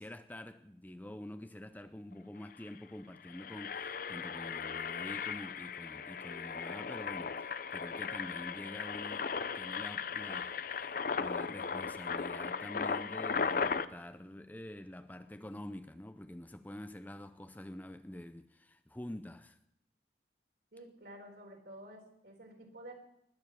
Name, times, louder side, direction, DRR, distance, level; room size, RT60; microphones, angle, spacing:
voice 1, 0.0-19.6, left 1 dB, 10° left, 0.5 m, -47 dB
Engine, 2.1-2.2 2.5-2.7 3.1-13.9, left 5 dB, 50° left, 0.6 m, -37 dB
voice 2, 20.7-22.9, right 1 dB, 65° right, 3.9 m, -51 dB
19.5 x 7.0 x 8.3 m
head